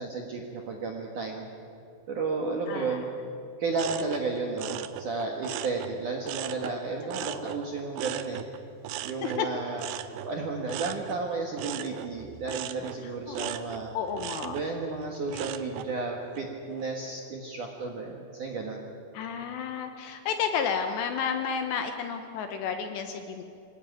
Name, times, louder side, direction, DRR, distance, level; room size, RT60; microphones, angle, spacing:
voice 1, 0.0-1.4 2.1-3.1 3.6-8.4 9.0-9.9 10.2-13.9 14.4-18.8, right 3 dB, 60° right, 1 dB, 2.1 m, -33 dB
voice 2, 2.7-3.0 7.2-7.5 9.2-9.5 13.3-13.5 13.9-14.6 19.1-23.4, left 7 dB, 75° left, 6 dB, 2.8 m, -31 dB
sound 1, 3.7-6.8 7.1-15.9 16.4-16.8, right 12 dB, 80° right, 3.0 m, -39 dB
25.0 x 18.5 x 9.2 m, 2.6 s
omnidirectional pair, 5.9 m